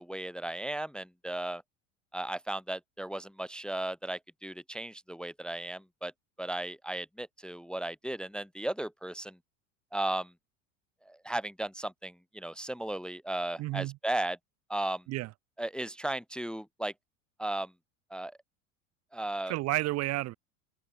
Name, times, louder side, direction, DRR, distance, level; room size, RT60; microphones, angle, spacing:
voice 1, 0.0-1.6 2.1-6.1 6.4-9.4 9.9-10.3 11.1-14.4 14.7-15.0 15.6-16.9 17.4-17.7 18.1-18.3 19.1-19.5, right 1 dB, ahead, 0.5 m, -35 dB
voice 2, 13.6-14.0 15.1-15.3 19.5-20.3, right 18 dB, 40° right, 0.7 m, -31 dB
open air
hypercardioid pair, 80°, 39 cm